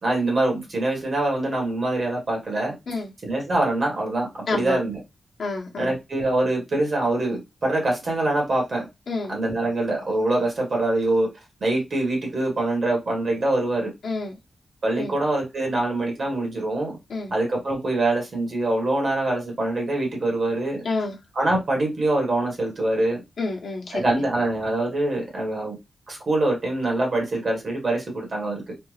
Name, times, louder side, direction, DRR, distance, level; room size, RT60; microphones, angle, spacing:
voice 1, 0.0-2.7 3.2-5.0 5.8-8.9 9.3-11.3 11.6-13.9 14.8-17.0 17.3-20.8 21.3-23.2 23.9-25.8 26.1-28.6, right 2 dB, 50° right, 0 dB, 1.6 m, -24 dB
voice 2, 4.5-4.8 5.4-5.9 9.1-9.3 14.0-14.3 15.0-15.1 17.1-17.3 20.8-21.2 23.4-24.2, left 3 dB, 65° left, -2 dB, 1.0 m, -29 dB
3.4 x 2.4 x 3.3 m, 0.22 s
wide cardioid pair, 145°, 0 cm